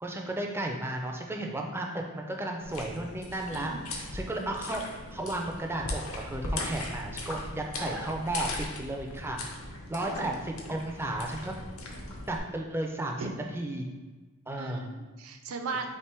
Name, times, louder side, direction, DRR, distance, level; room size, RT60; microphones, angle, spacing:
voice 1, 0.0-4.8 5.1-8.5 8.8-9.4 9.9-11.5 12.3-13.2 13.5-13.8 14.5-14.9, right 1 dB, 10° right, 1 dB, 0.4 m, -34 dB
sound 1, 2.6-12.4, left 2 dB, 75° left, 0.7 m, -39 dB
voice 2, 3.5-3.9 7.8-8.1 10.2-10.3 13.2-13.4 14.6-15.9, right 4 dB, 85° right, 6 dB, 0.5 m, -38 dB
3.4 x 2.9 x 4.4 m, 1.3 s
head